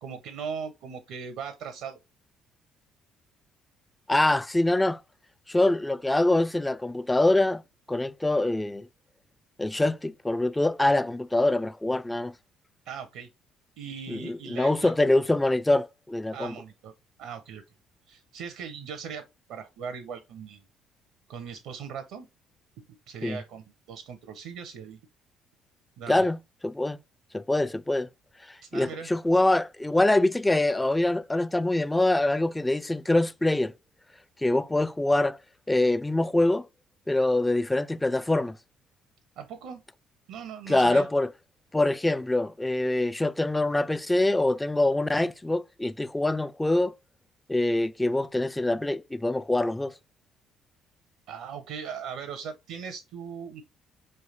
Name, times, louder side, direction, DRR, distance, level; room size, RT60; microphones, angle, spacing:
voice 1, 0.0-2.0 12.9-13.3 13.8-14.9 16.3-16.9 17.2-17.6 18.1-20.6 21.3-22.3 23.1-25.0 26.0-26.3 28.6-29.1 39.4-39.8 40.3-41.1 51.3-53.6, right 6 dB, 75° right, 0.6 m, -39 dB
voice 2, 4.1-5.0 5.5-7.6 7.9-8.9 9.6-12.3 14.1-16.6 23.2-23.4 26.1-26.4 26.6-27.0 27.3-28.1 28.7-33.7 34.4-35.4 35.7-36.7 37.1-38.6 40.7-41.3 41.7-46.9 47.5-49.9, left 2 dB, 15° left, 0.3 m, -24 dB
4.5 x 3.2 x 2.8 m
hypercardioid pair, 55°, 0 cm